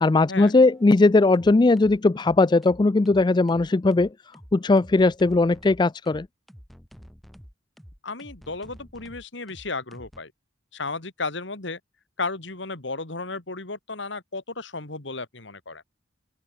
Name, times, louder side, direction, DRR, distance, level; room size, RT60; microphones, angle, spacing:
voice 1, 0.0-4.1 4.5-6.3, left 3 dB, 25° left, 0.4 m, -19 dB
sound 1, 0.6-0.9 1.3-10.2, equal, ahead, 6.2 m, -48 dB
voice 2, 8.0-10.3 10.7-11.8 12.2-15.8, left 3 dB, 70° left, 2.5 m, -34 dB
open air
head